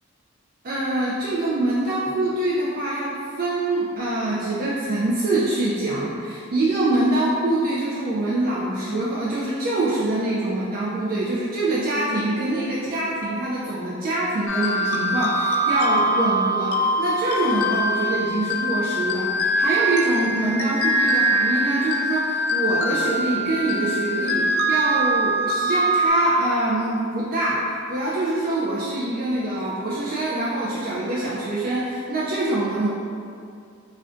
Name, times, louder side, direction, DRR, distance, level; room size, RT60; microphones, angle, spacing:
voice 1, 0.6-32.9, right 2 dB, 45° right, -7 dB, 0.3 m, -24 dB
sound 1, 14.5-26.1, equal, 75° left, 0.3 m, -23 dB
2.5 x 2.2 x 3.6 m, 2.4 s
head